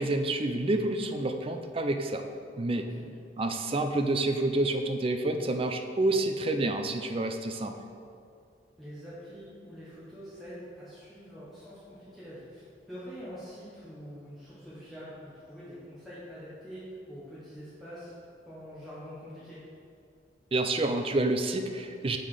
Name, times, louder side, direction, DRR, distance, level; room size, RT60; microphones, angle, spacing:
voice 1, 0.0-2.2 2.6-2.9 3.4-7.7 20.5-22.2, right 2 dB, 30° right, 6 dB, 0.4 m, -28 dB
voice 2, 2.7-3.1 8.8-18.1 18.5-19.6, equal, ahead, -11 dB, 1.1 m, -45 dB
7.1 x 3.9 x 4.9 m, 2.4 s
head